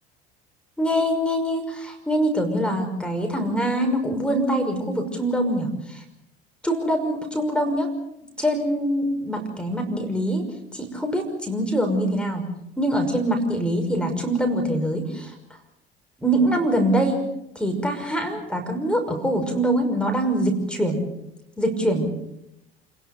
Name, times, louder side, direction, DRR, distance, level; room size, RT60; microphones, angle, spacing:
voice 1, 0.8-6.0 6.6-7.9 8.4-10.4 10.7-12.4 12.8-15.3 16.2-17.2 17.6-21.0 21.6-22.1, right 1 dB, 5° left, 3 dB, 5.8 m, -24 dB
28.0 x 21.0 x 6.9 m, 0.82 s
figure-of-eight pair, 70°, 31 cm